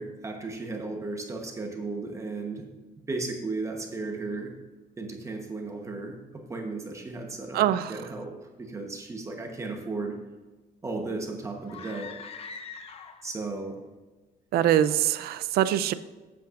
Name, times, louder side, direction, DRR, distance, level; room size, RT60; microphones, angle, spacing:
voice 1, 0.0-2.7 3.1-4.5 5.0-10.2 10.8-12.1 13.2-13.8 14.9-15.0, right 3 dB, 20° right, 2 dB, 1.0 m, -35 dB
voice 2, 7.5-7.9 14.5-15.9, right 11 dB, 70° right, 14 dB, 0.5 m, -23 dB
sound 1, 11.6-13.4, left 5 dB, 35° left, 0.6 m, -42 dB
13.5 x 8.6 x 2.5 m, 1.2 s
cardioid pair, 175°, 17 cm